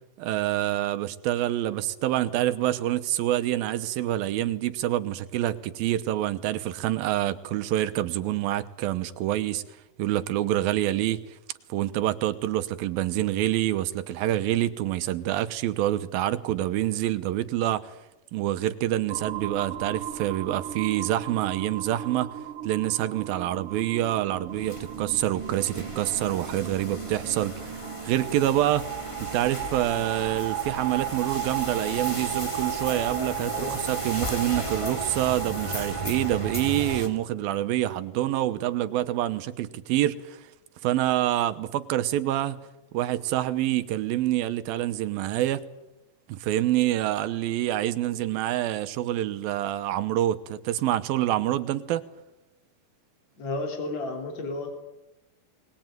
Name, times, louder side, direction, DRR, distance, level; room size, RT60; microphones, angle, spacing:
voice 1, 0.2-9.6 10.0-11.2 11.7-17.9 18.3-22.3 22.6-27.8 28.0-28.9 29.2-40.4 40.8-42.6 42.9-45.6 46.3-52.0, right 13 dB, 90° right, 2.8 m, -26 dB
sound 1, 19.1-37.0, right 11 dB, 65° right, 1.4 m, -35 dB
sound 2, 24.5-37.1, left 1 dB, 10° left, 2.2 m, -37 dB
voice 2, 33.4-33.7 53.4-54.7, left 2 dB, 50° left, 4.8 m, -32 dB
21.0 x 20.5 x 9.2 m
omnidirectional pair, 4.1 m